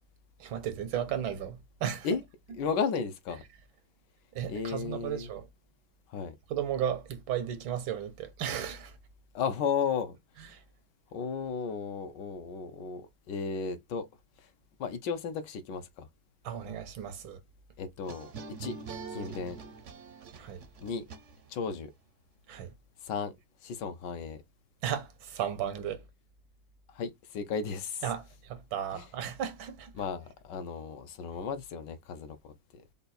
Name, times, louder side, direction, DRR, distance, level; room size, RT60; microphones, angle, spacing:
voice 1, 0.4-2.1 4.3-5.5 6.5-9.0 10.5-10.6 16.4-17.4 20.4-20.6 22.5-22.7 24.8-26.1 28.0-29.9, right 9 dB, 90° right, 1.8 m, -35 dB
voice 2, 2.6-3.4 4.5-5.3 6.1-6.3 9.3-10.2 11.1-14.1 14.4-14.5 14.8-16.1 17.8-18.3 18.6-18.7 19.1-19.6 20.8-21.0 21.5-21.9 23.0-23.3 23.6-24.4 26.9-28.1 28.9-29.0 29.9-32.8, left 6 dB, 70° left, 1.3 m, -34 dB
sound 1, 18.0-21.7, right 5 dB, 60° right, 0.7 m, -44 dB
5.3 x 2.3 x 4.1 m
omnidirectional pair, 2.1 m